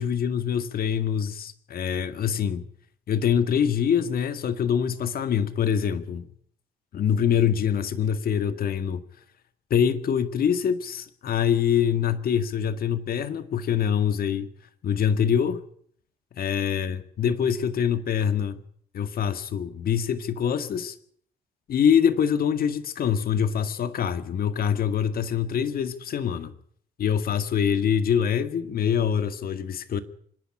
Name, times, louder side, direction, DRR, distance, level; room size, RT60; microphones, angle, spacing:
voice 1, 0.0-2.7 3.1-6.3 6.9-9.0 9.7-14.5 14.8-15.6 16.4-18.6 18.9-21.0 21.7-26.5 27.0-30.0, left 8 dB, 60° left, 1.9 m, -24 dB
25.5 x 10.5 x 9.8 m
supercardioid pair, 70°, 17 cm